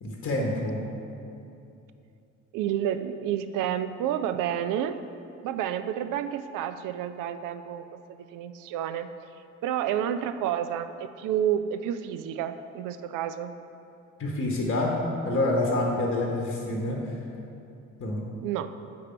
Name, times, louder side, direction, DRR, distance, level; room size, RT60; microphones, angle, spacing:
voice 1, 0.0-0.8 14.2-14.9 15.2-17.1 18.0-18.2, left 2 dB, 35° left, -1 dB, 1.1 m, -27 dB
voice 2, 2.5-5.0 5.4-9.1 9.6-13.5 18.4-18.7, right 10 dB, 55° right, 11 dB, 0.5 m, -30 dB
6.9 x 5.0 x 4.4 m, 2.7 s
hypercardioid pair, 55°, 38 cm